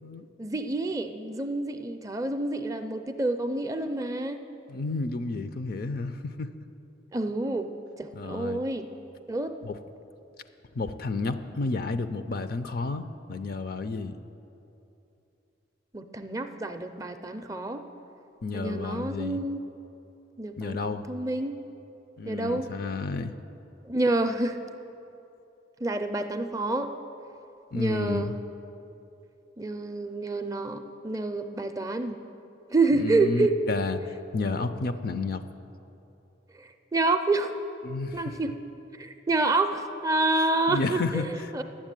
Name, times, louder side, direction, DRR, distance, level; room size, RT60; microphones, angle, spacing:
voice 1, 0.4-4.4 7.1-8.9 9.3-9.5 15.9-17.8 18.5-19.6 20.4-21.6 22.2-22.7 23.8-24.6 25.8-26.9 27.7-28.3 29.6-32.2 32.7-33.5 36.6-37.5 38.1-38.5 39.0-41.6, right 2 dB, 15° right, 7 dB, 0.4 m, -28 dB
voice 2, 4.7-6.5 8.1-8.6 9.6-9.8 10.7-13.0 13.3-14.2 18.4-19.4 20.6-21.1 22.2-23.4 27.7-28.3 32.9-35.4 37.8-38.4 40.7-41.6, left 3 dB, 50° left, 10 dB, 0.4 m, -31 dB
10.0 x 7.4 x 8.9 m, 2.8 s
head